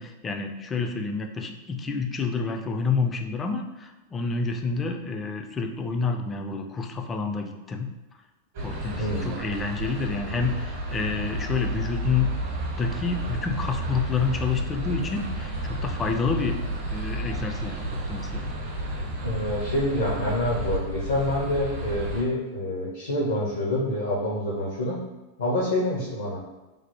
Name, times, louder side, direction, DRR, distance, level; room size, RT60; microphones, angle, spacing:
voice 1, 0.0-7.9 8.6-12.3 12.8-16.6 16.9-18.4, left 4 dB, 20° left, 4 dB, 0.3 m, -28 dB
sound 1, 8.5-22.2, right 1 dB, 55° right, 0.8 m, -31 dB
voice 2, 9.0-9.3 19.2-25.0 25.4-26.4, left 1 dB, 70° left, -4 dB, 0.6 m, -27 dB
3.2 x 2.0 x 2.8 m, 1.1 s
figure-of-eight pair, 90°, 0 cm